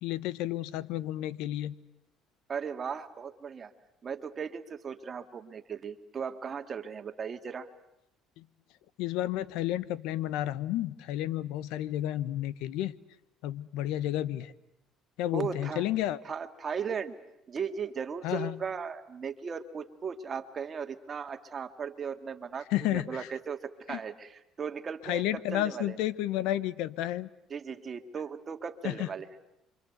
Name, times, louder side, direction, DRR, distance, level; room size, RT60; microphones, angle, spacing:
voice 1, 0.0-1.7 8.4-8.5 9.0-12.9 13.4-14.5 15.2-16.2 18.2-18.6 22.7-23.3 23.9-24.0 25.0-27.3 28.8-29.1, left 13 dB, 80° left, 18 dB, 1.1 m, -31 dB
voice 2, 2.5-3.7 4.0-7.7 15.3-15.8 16.2-17.2 17.5-26.0 27.5-29.3, right 6 dB, 35° right, 8 dB, 2.1 m, -37 dB
29.0 x 25.5 x 8.0 m, 0.85 s
cardioid pair, 110°, 0 cm